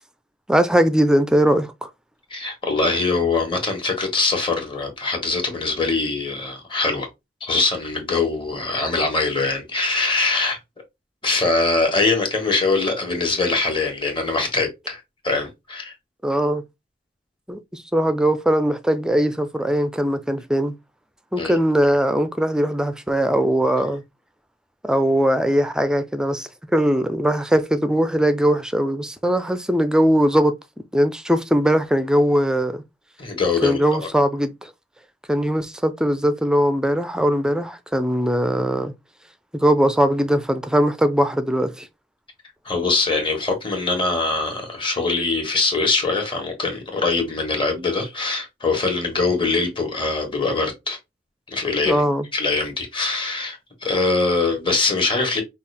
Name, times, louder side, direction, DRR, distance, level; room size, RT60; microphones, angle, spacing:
voice 1, 0.5-1.9 16.2-16.6 17.5-20.7 21.3-24.0 24.8-30.5 30.9-32.8 33.6-34.7 35.3-38.9 39.5-41.9 51.9-52.3, equal, 5° right, 0.4 m, -20 dB
voice 2, 2.3-7.1 7.4-10.6 11.2-15.9 21.4-21.6 33.2-34.1 42.6-51.0 51.5-52.0 52.3-55.4, left 3 dB, 25° left, 1.4 m, -23 dB
5.4 x 2.5 x 3.4 m
head